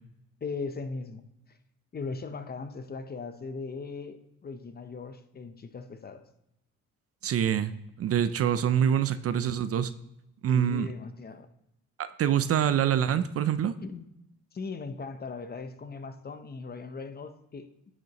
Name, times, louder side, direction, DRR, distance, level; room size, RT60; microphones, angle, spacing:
voice 1, 0.4-1.2 1.5-1.6 1.9-6.3 10.5-11.5 13.8-14.0 14.5-17.7, left 4 dB, 30° left, 10 dB, 0.7 m, -38 dB
voice 2, 7.2-7.7 8.0-9.9 10.4-10.9 12.0-13.8, right 9 dB, 50° right, 13 dB, 0.5 m, -25 dB
10.0 x 6.5 x 3.0 m, 0.84 s
cardioid pair, 90°, 30 cm